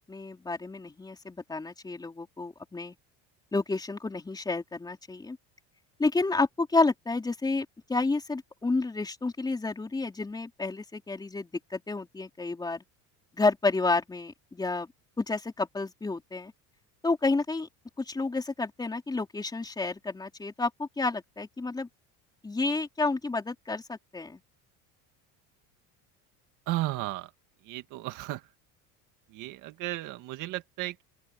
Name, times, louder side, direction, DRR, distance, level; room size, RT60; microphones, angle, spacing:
voice 1, 0.0-2.9 3.5-5.4 6.0-12.8 13.3-14.9 15.2-16.5 17.0-17.7 18.0-21.9 22.4-24.4, left 3 dB, 10° left, 3.9 m, -30 dB
voice 2, 26.7-27.3 27.6-28.5 29.3-31.0, right 17 dB, 60° right, 2.0 m, -34 dB
open air
cardioid pair, 150°, 36 cm